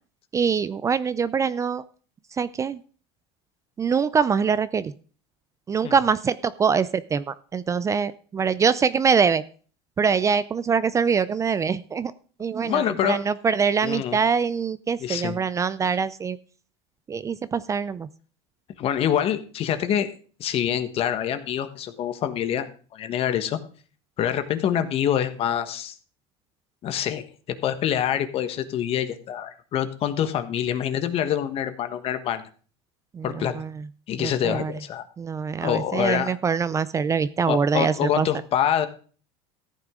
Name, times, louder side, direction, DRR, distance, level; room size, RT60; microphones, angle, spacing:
voice 1, 0.3-1.8 2.4-2.8 3.8-4.9 5.7-9.4 10.0-12.1 12.4-16.4 17.1-18.1 33.1-33.9 34.2-34.7 35.2-38.3, right 6 dB, 20° right, 16 dB, 0.5 m, -24 dB
voice 2, 12.6-13.2 13.8-14.2 15.0-15.4 18.8-20.1 20.4-22.7 22.9-23.6 24.2-25.9 26.8-27.2 27.5-32.4 33.2-33.5 34.1-35.0 35.6-36.3 37.5-38.9, left 10 dB, 45° left, 10 dB, 1.3 m, -25 dB
14.5 x 9.3 x 3.8 m, 0.41 s
supercardioid pair, 120°, 14 cm